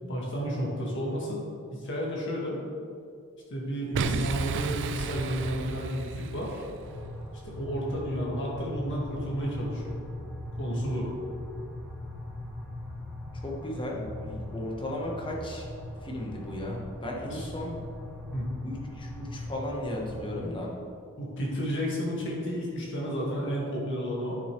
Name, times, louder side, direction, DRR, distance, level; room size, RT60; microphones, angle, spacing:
voice 1, 0.1-1.4 1.7-2.6 3.5-6.6 7.5-10.0 10.6-11.1 17.3-17.5 18.3-18.5 21.2-24.4, equal, 55° left, -4 dB, 2.0 m, -32 dB
Boom, 3.9-6.9, right 5 dB, 55° right, 0.4 m, -33 dB
sound 1, 6.8-20.4, left 1 dB, ahead, 1.6 m, -40 dB
voice 2, 13.3-15.7 16.0-17.8 18.6-20.7, left 1 dB, 25° left, -2 dB, 1.2 m, -35 dB
10.5 x 6.2 x 3.3 m, 2.4 s
head